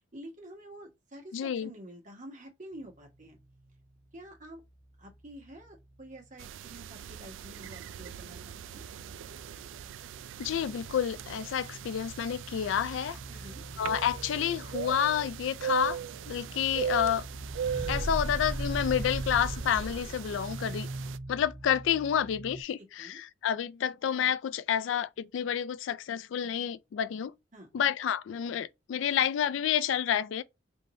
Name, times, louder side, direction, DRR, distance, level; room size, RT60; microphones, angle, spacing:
voice 1, 0.0-3.4 4.1-4.6 5.0-8.8 13.3-13.6 22.8-23.2 27.5-27.7, right 1 dB, 45° right, 1.3 m, -48 dB
voice 2, 1.3-1.7 10.4-13.2 13.8-16.0 16.3-17.3 17.9-20.9 21.3-27.3 27.7-30.4, left 9 dB, 85° left, 0.3 m, -29 dB
sound 1, 2.7-6.5 6.8-22.6, right 1 dB, 15° right, 0.5 m, -45 dB
sound 2, 6.4-21.2, right 8 dB, 90° right, 0.3 m, -40 dB
sound 3, 17.4-20.5, right 1 dB, 75° right, 1.2 m, -37 dB
3.6 x 2.6 x 4.0 m
head